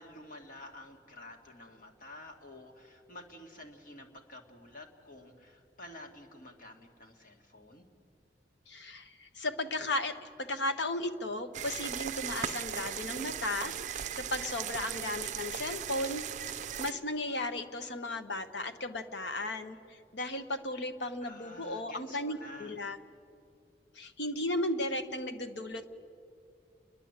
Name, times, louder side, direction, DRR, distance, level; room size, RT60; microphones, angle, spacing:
voice 1, 0.0-7.9 21.2-22.8, left 1 dB, 50° left, 2 dB, 2.0 m, -50 dB
voice 2, 8.7-13.8 14.1-23.0 23.9-25.9, left 1 dB, 75° left, 8 dB, 1.1 m, -35 dB
sound 1, 11.5-16.9, right 9 dB, 45° right, 0.5 m, -38 dB
29.5 x 11.0 x 8.2 m, 2.5 s
head